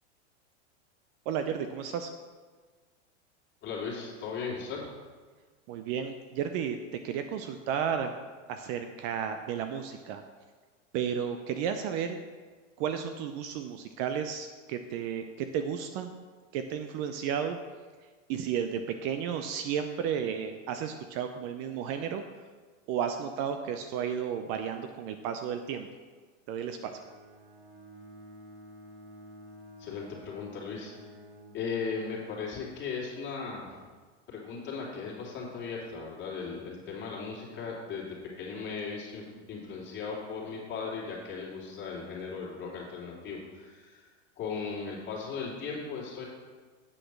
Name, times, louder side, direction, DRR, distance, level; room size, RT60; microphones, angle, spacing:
voice 1, 1.3-2.1 5.7-8.1 8.5-10.2 10.9-12.2 12.8-16.1 16.5-17.6 18.3-22.2 22.9-25.9 26.5-26.9, right 8 dB, 40° right, 7 dB, 0.6 m, -33 dB
voice 2, 3.6-4.8 29.8-30.9 31.5-33.7 34.3-38.1 38.4-44.1 44.4-46.2, left 5 dB, 30° left, -4 dB, 2.9 m, -37 dB
Bowed string instrument, 26.8-31.7, right 1 dB, 80° right, 2.5 m, -51 dB
8.6 x 5.0 x 6.0 m, 1.4 s
hypercardioid pair, 125°, 37 cm